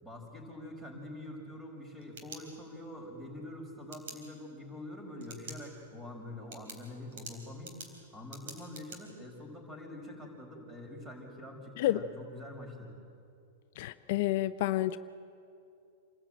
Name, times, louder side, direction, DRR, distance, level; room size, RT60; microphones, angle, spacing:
voice 1, 0.0-12.9, left 1 dB, 10° right, 1 dB, 5.7 m, -45 dB
sound 1, 1.8-3.0 3.9-4.2 5.2-5.6 6.0-6.1 6.5-9.0, right 4 dB, 65° right, 3.8 m, -47 dB
voice 2, 13.8-15.0, left 15 dB, 60° left, 12 dB, 0.6 m, -29 dB
27.0 x 14.0 x 9.0 m, 2.5 s
hypercardioid pair, 125°, 0 cm